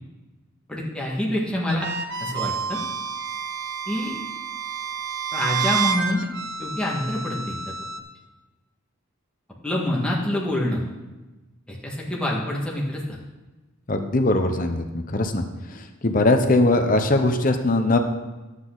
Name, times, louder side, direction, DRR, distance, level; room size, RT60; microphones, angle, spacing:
voice 1, 0.7-1.9 2.2-2.8 3.8-4.2 5.3-6.3 6.6-7.6 9.6-10.8 11.7-13.2, left 1 dB, 5° left, -4 dB, 1.7 m, -26 dB
sound 1, 1.7-8.0, right 6 dB, 55° right, 0.8 m, -29 dB
voice 2, 13.9-18.0, left 2 dB, 40° left, 6 dB, 0.7 m, -21 dB
11.0 x 8.1 x 3.9 m, 1.2 s
head